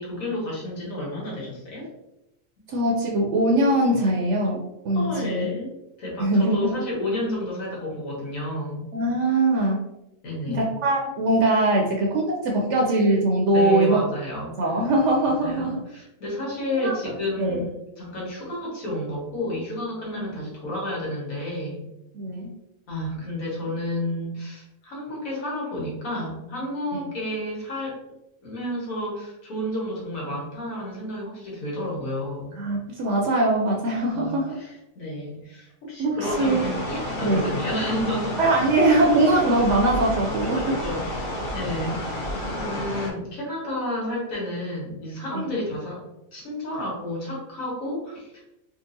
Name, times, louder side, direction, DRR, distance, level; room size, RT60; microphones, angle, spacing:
voice 1, 0.0-1.9 4.9-8.9 10.2-10.7 13.5-14.5 14.8-14.9 15.4-17.7 18.0-21.8 22.9-27.9 28.4-32.6 34.1-38.4 40.6-46.0 46.3-48.5, left 1 dB, 90° left, -5 dB, 1.7 m, -31 dB
voice 2, 2.7-5.5 6.2-6.6 8.9-9.8 10.5-14.0 14.6-15.8 16.8-17.0 17.4-17.6 20.1-20.2 22.1-22.6 26.9-27.0 32.6-34.6 36.0-36.7 37.2-37.6 38.4-40.7 45.3-45.4, right 2 dB, 70° right, -1 dB, 0.8 m, -22 dB
sound 1, 36.2-43.1, left 1 dB, 45° left, 0.9 m, -31 dB
3.7 x 2.4 x 2.6 m, 0.91 s
omnidirectional pair, 1.4 m